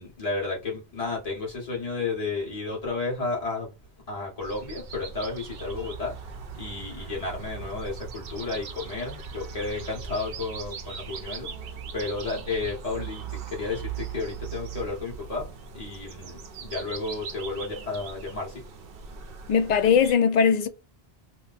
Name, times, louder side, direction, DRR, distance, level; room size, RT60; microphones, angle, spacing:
voice 1, 0.0-3.7 4.1-6.2 6.5-13.2 13.5-18.6, left 3 dB, 35° left, 1.4 m, -32 dB
sound 1, 4.4-20.1, right 6 dB, 65° right, 0.8 m, -39 dB
voice 2, 19.5-20.7, left 7 dB, 55° left, 0.5 m, -20 dB
2.8 x 2.1 x 4.0 m
omnidirectional pair, 1.1 m